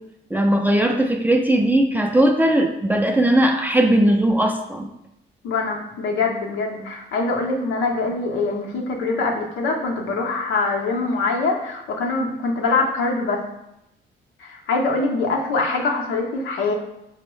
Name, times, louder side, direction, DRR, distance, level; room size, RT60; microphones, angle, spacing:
voice 1, 0.3-4.9, right 1 dB, 10° right, 2 dB, 0.4 m, -18 dB
voice 2, 5.4-13.4 14.4-16.7, left 3 dB, 85° left, 0 dB, 0.7 m, -23 dB
4.4 x 2.0 x 3.0 m, 0.84 s
cardioid pair, 90°, 20 cm